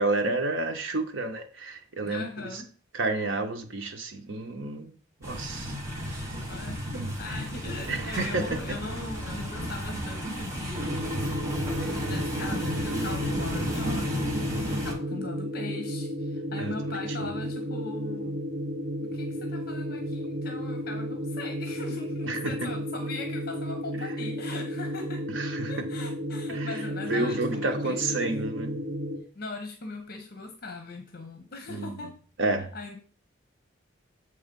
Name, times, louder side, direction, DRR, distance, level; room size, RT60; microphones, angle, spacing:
voice 1, 0.0-2.6 2.9-4.9 5.2-5.7 6.9-7.1 7.9-8.8 15.1-15.2 16.6-17.3 22.2-22.5 25.3-25.9 26.5-26.7 27.1-28.8 31.7-32.1 32.4-32.7, right 2 dB, 75° right, 1.0 m, -30 dB
voice 2, 2.0-2.7 6.4-6.8 7.2-11.5 11.9-18.4 19.0-25.3 25.7-28.2 29.3-32.2 32.7-33.0, left 3 dB, 50° left, 0.9 m, -40 dB
sound 1, 5.2-14.9, equal, 15° right, 1.4 m, -33 dB
sound 2, 10.8-29.2, equal, 50° right, 1.6 m, -33 dB
7.3 x 3.4 x 5.2 m
head